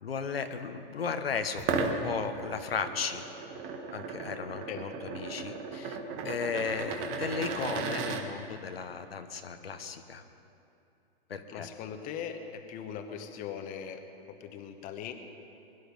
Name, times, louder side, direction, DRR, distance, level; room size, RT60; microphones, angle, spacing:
voice 1, 0.0-3.3 3.9-6.0 6.2-10.2 11.3-11.7, left 6 dB, 90° left, 7 dB, 1.2 m, -35 dB
sound 1, 1.6-8.2, right 5 dB, 35° right, 1.4 m, -35 dB
voice 2, 11.5-14.0 14.3-15.1, left 8 dB, 30° left, 6 dB, 1.1 m, -40 dB
21.5 x 11.5 x 5.4 m, 2.7 s
hypercardioid pair, 130°, 29 cm